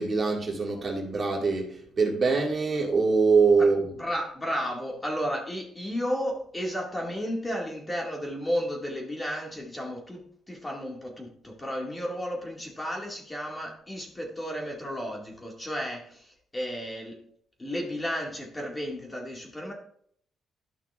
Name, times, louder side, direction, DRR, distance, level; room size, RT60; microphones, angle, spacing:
voice 1, 0.0-4.0, right 4 dB, 35° right, -1 dB, 2.2 m, -24 dB
voice 2, 4.0-17.2 17.6-19.7, equal, 20° left, 0 dB, 2.1 m, -33 dB
12.5 x 5.8 x 2.5 m, 0.63 s
cardioid pair, 90°, 0 cm